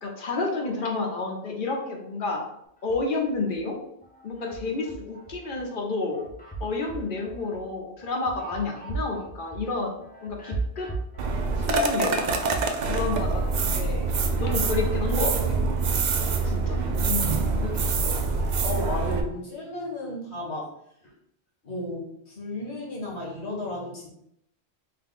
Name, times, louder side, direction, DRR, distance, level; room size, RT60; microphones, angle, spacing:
voice 1, 0.0-2.4 2.8-3.8 4.2-6.3 6.6-10.0 10.2-10.9 11.6-12.5 12.8-14.1 14.4-15.6 16.4-17.3 17.6-18.3, left 3 dB, 50° left, 1 dB, 1.0 m, -30 dB
sound 1, 2.8-3.6 4.0-5.6 6.0-15.7 16.0-18.6, right 3 dB, 10° left, 0.7 m, -39 dB
sound 2, 11.2-19.2, right 4 dB, 55° right, 0.5 m, -25 dB
voice 2, 18.6-20.7 21.6-24.1, left 1 dB, 75° left, -4 dB, 1.7 m, -34 dB
3.7 x 2.8 x 3.8 m, 0.74 s
omnidirectional pair, 1.1 m